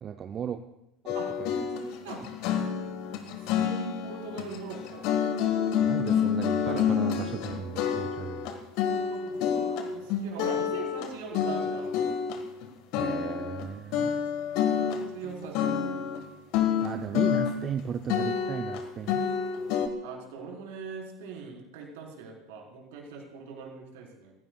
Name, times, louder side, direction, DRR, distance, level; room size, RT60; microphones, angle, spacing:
voice 1, 0.0-0.6 1.0-1.1 1.4-1.5 5.8-8.6 12.9-14.2 16.8-19.2, right 8 dB, 35° right, 8 dB, 0.6 m, -36 dB
sound 1, 1.1-12.7 12.9-13.7 13.9-16.2 16.5-17.8 18.1-19.9, left 8 dB, 50° left, 1.6 m, -28 dB
voice 2, 1.7-2.2 3.4-5.0 6.7-6.9 8.9-12.0 14.9-16.0 20.0-24.3, right 5 dB, 60° right, -1 dB, 4.2 m, -41 dB
29.5 x 16.0 x 2.3 m, 0.87 s
figure-of-eight pair, 75°, 0 cm